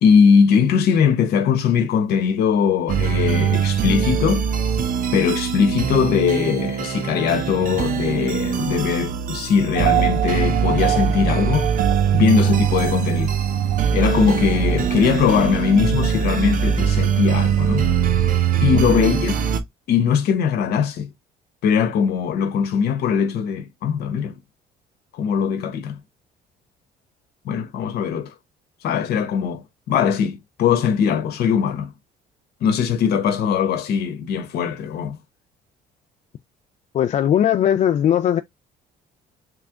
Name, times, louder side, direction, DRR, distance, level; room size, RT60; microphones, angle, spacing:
voice 1, 0.0-4.5 5.1-11.7 12.1-13.4 13.9-17.9 18.6-19.3 19.9-21.1 21.6-24.4 25.1-26.0 27.4-28.3 28.8-31.9 32.6-35.2, left 7 dB, 70° left, 1.2 m, -20 dB
sound 1, 2.9-19.6, right 7 dB, 55° right, 0.8 m, -22 dB
sound 2, 9.7-17.9, right 14 dB, 70° right, 0.4 m, -28 dB
voice 2, 36.9-38.4, left 10 dB, 45° left, 0.4 m, -19 dB
3.5 x 3.3 x 3.6 m
cardioid pair, 110°, 17 cm